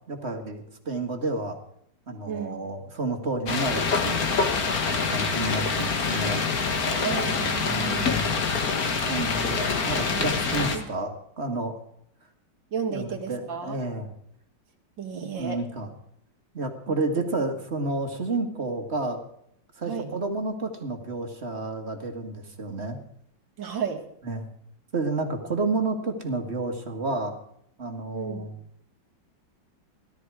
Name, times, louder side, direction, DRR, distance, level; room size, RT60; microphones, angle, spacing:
voice 1, 0.1-1.6 2.1-4.4 4.8-6.5 6.7-6.9 7.6-8.3 9.1-11.1 11.4-11.7 12.9-14.1 15.4-15.9 16.5-19.2 19.8-23.0 24.2-24.5 24.9-27.4 27.8-28.5, right 2 dB, 35° right, 5 dB, 2.0 m, -30 dB
voice 2, 2.3-2.7 7.0-8.2 10.1-10.9 12.7-13.8 15.0-15.6 16.9-17.2 19.9-20.1 23.6-24.0 28.1-28.5, right 7 dB, 85° right, 2 dB, 2.5 m, -33 dB
sound 1, 3.5-10.8, left 5 dB, 55° left, 1.9 m, -26 dB
17.0 x 13.0 x 4.8 m, 0.73 s
omnidirectional pair, 2.0 m